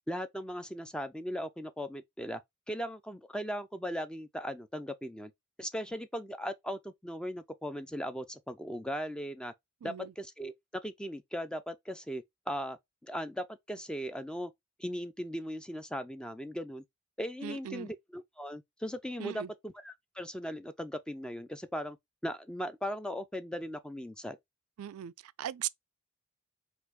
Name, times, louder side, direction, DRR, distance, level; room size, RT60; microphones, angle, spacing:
voice 1, 0.1-2.4 2.7-5.3 5.6-9.5 9.8-14.5 14.8-16.8 17.2-22.0 22.2-24.4, equal, 5° left, 0.4 m, -38 dB
voice 2, 9.8-10.1 17.4-17.9 19.2-19.5 24.8-25.7, right 10 dB, 75° right, 0.3 m, -39 dB
4.4 x 2.5 x 3.9 m
head